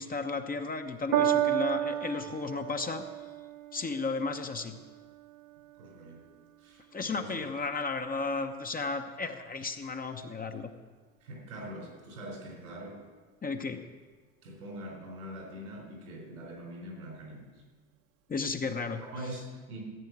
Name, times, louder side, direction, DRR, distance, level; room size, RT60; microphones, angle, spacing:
voice 1, 0.0-3.0 3.7-4.7 6.9-10.7 13.4-13.9 18.3-19.0, left 4 dB, 20° left, 6 dB, 0.9 m, -34 dB
Piano, 1.1-7.7 8.5-8.6, right 11 dB, 65° right, 1.4 m, -34 dB
voice 2, 5.8-6.2 6.6-7.4 11.2-13.0 14.4-17.4 19.0-19.8, equal, 80° right, 0 dB, 4.3 m, -43 dB
14.5 x 8.8 x 6.1 m, 1.4 s
hypercardioid pair, 75°, 42 cm